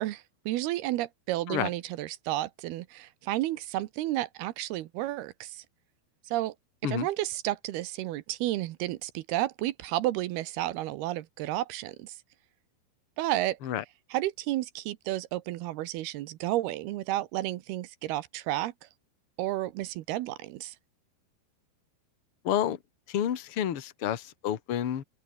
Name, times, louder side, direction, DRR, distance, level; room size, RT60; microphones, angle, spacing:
voice 1, 0.0-5.6 6.3-6.5 6.8-12.1 13.2-13.6 14.1-18.7 19.4-20.7, right 15 dB, 75° right, 2.6 m, -32 dB
voice 2, 22.4-22.8 23.1-25.0, left 10 dB, 50° left, 1.6 m, -29 dB
open air
omnidirectional pair, 5.1 m